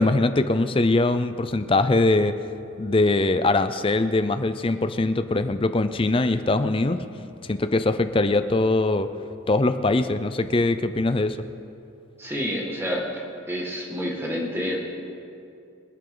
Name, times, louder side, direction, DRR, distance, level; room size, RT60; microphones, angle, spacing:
voice 1, 0.0-2.3 2.8-7.0 7.5-9.1 9.5-11.4, left 2 dB, 25° left, 10 dB, 0.5 m, -22 dB
voice 2, 12.2-13.1 13.5-14.8, equal, 10° right, -2 dB, 1.9 m, -28 dB
25.5 x 8.9 x 3.9 m, 2.6 s
head